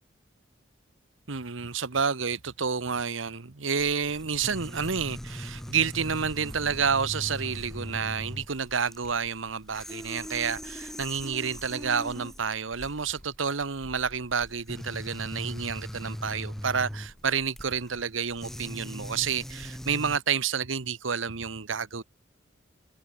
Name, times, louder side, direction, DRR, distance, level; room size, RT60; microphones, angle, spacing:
voice 1, 1.3-22.0, right 6 dB, 90° right, 1.1 m, -29 dB
sound 1, 3.8-20.2, equal, ahead, 0.4 m, -40 dB
head